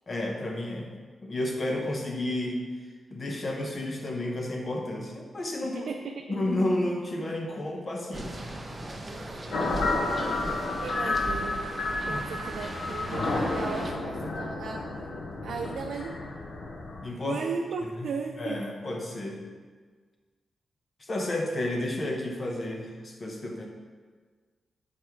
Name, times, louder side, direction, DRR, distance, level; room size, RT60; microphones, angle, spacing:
voice 1, 0.1-0.9 1.2-2.6 3.1-5.9 6.3-8.4 12.1-12.2 17.0-17.4 18.4-19.4 21.0-23.7, left 1 dB, 35° left, 1 dB, 1.0 m, -31 dB
voice 2, 5.6-6.2 10.8-11.7 12.1-14.9 15.4-16.1 17.2-18.6, right 5 dB, 85° right, 2 dB, 0.5 m, -36 dB
sound 1, 8.1-13.9, right 1 dB, 20° right, 0.8 m, -37 dB
sound 2, 9.5-17.1, left 2 dB, 65° left, 0.9 m, -31 dB
8.9 x 4.2 x 4.7 m, 1.5 s
wide cardioid pair, 150°, 0 cm